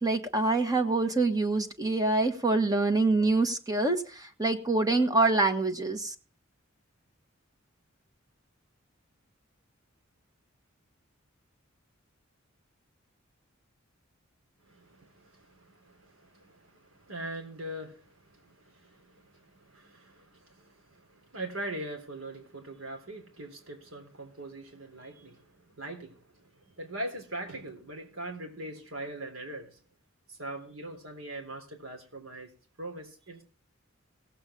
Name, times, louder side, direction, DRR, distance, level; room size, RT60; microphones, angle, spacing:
voice 1, 0.0-6.1, right 3 dB, 20° right, 1.2 m, -26 dB
voice 2, 14.6-29.8 30.3-32.5 32.8-33.4, right 1 dB, 85° right, 3.7 m, -42 dB
18.0 x 8.1 x 3.7 m
head